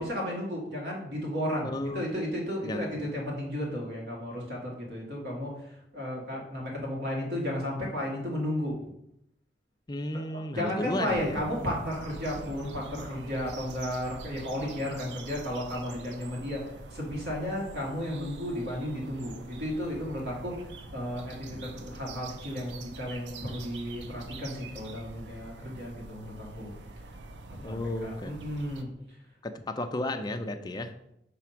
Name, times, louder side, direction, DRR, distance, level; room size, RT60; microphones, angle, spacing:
voice 1, 0.0-5.5 5.9-8.8 10.1-16.6 16.9-20.7 20.9-26.7 27.5-28.9, equal, 65° right, -3 dB, 2.2 m, -33 dB
voice 2, 1.6-2.1 2.6-2.9 9.9-11.4 27.6-28.3 29.4-31.1, left 1 dB, 25° left, 7 dB, 0.5 m, -33 dB
sound 1, 11.1-28.8, right 3 dB, 85° right, 0.6 m, -45 dB
6.0 x 3.4 x 5.8 m, 0.80 s
head